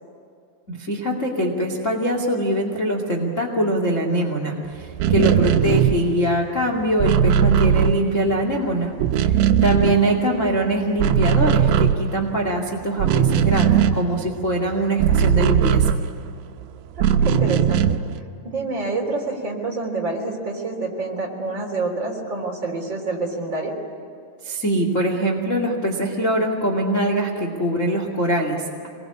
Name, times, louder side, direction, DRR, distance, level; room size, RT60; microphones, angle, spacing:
voice 1, 0.7-8.9 9.2-15.9 24.4-28.9, right 1 dB, 25° left, 0 dB, 1.7 m, -23 dB
sound 1, 4.9-8.6 8.8-10.6 10.9-16.5 17.0-18.2, right 8 dB, 80° right, 3.1 m, -19 dB
voice 2, 17.0-23.8, right 3 dB, 25° right, 0 dB, 3.7 m, -28 dB
26.5 x 21.0 x 8.6 m, 2.5 s
omnidirectional pair, 5.1 m